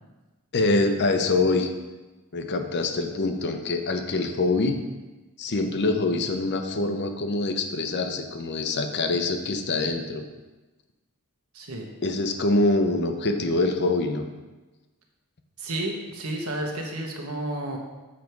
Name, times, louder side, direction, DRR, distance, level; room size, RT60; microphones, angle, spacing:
voice 1, 0.5-1.7 2.3-4.8 5.4-10.2 12.0-14.3, left 2 dB, 50° left, 6 dB, 0.7 m, -25 dB
voice 2, 11.5-11.9 15.6-17.8, right 1 dB, 85° right, 1 dB, 1.3 m, -31 dB
7.4 x 5.1 x 4.6 m, 1.2 s
head